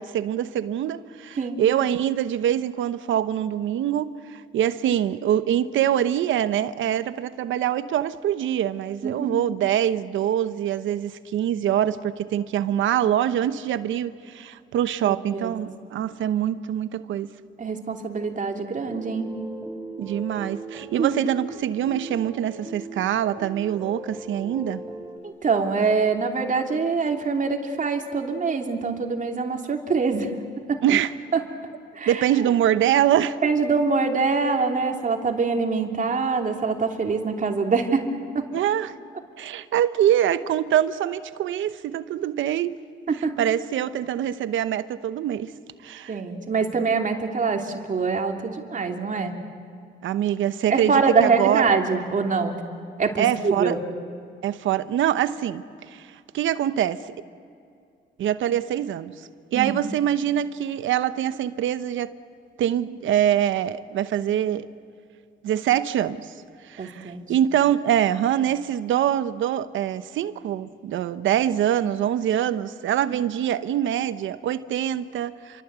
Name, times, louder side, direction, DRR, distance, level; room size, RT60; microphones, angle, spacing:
voice 1, 0.0-17.3 20.0-24.8 30.8-31.1 32.1-33.4 38.5-38.9 39.4-42.8 43.4-45.5 45.8-46.2 50.0-51.7 53.2-53.7 54.4-56.1 56.3-57.1 58.2-59.1 59.5-62.1 62.6-64.7 65.4-66.3 66.6-75.6, right 10 dB, 75° right, 1.0 m, -24 dB
voice 2, 9.0-9.4 15.0-15.5 17.6-19.3 21.0-21.2 25.2-30.3 30.7-30.8 31.3-31.4 32.0-32.1 33.4-38.1 38.3-38.5 43.1-43.3 46.1-49.3 50.7-52.6 53.0-53.8 59.5-59.9 66.8-67.3, right 4 dB, 40° right, 3.0 m, -24 dB
sound 1, 18.8-25.2, right 3 dB, 15° right, 3.6 m, -38 dB
28.5 x 24.0 x 8.2 m
cardioid pair, 90°, 20 cm